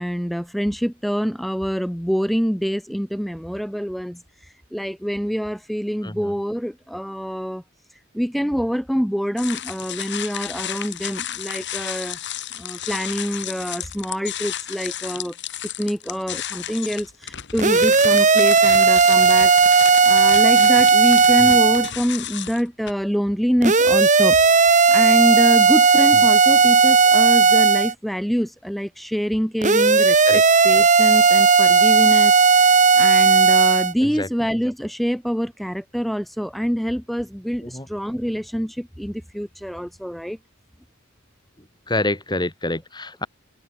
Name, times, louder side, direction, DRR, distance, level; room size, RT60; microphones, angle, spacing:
voice 1, 0.0-7.6 7.9-12.2 12.5-15.3 15.8-24.4 24.6-40.4, equal, ahead, 3.3 m, -26 dB
sound 1, 9.4-22.9, left 10 dB, 60° left, 6.4 m, -33 dB
sound 2, 17.6-21.9 23.6-27.9 29.6-33.9, right 5 dB, 35° right, 2.2 m, -15 dB
voice 2, 41.9-43.3, left 2 dB, 20° left, 5.7 m, -27 dB
open air
head